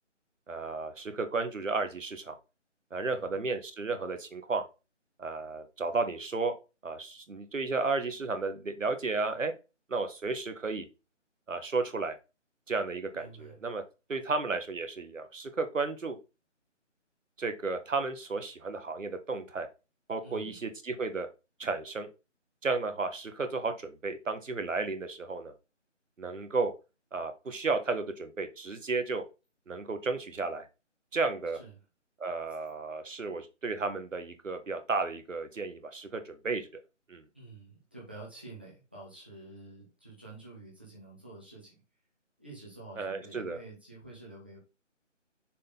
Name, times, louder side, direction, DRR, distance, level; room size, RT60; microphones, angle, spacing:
voice 1, 0.5-2.3 2.9-4.6 5.2-6.5 6.8-9.5 9.9-10.9 11.5-12.2 12.7-13.8 14.1-16.2 17.4-19.7 20.1-21.3 21.6-22.1 22.6-25.5 26.2-26.7 27.1-29.2 29.7-30.7 31.1-31.6 32.2-36.7 37.1-37.2 43.0-43.6, right 3 dB, 90° right, 8 dB, 1.4 m, -33 dB
voice 2, 13.1-13.6 20.2-20.6 31.5-31.8 37.3-41.8 42.4-44.6, right 2 dB, 10° right, -5 dB, 0.7 m, -49 dB
6.5 x 3.9 x 3.8 m, 0.29 s
figure-of-eight pair, 165°, 37 cm